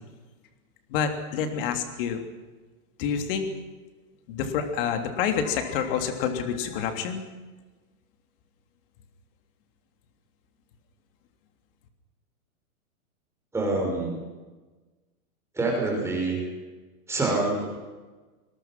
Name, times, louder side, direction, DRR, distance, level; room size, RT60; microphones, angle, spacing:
voice 1, 0.9-2.2 3.0-3.5 4.3-7.2, left 7 dB, 35° left, 6 dB, 3.2 m, -28 dB
voice 2, 13.5-14.2 15.6-16.4 17.1-17.7, right 2 dB, 5° right, -1 dB, 5.6 m, -26 dB
25.0 x 22.5 x 6.1 m, 1.2 s
supercardioid pair, 170°, 44 cm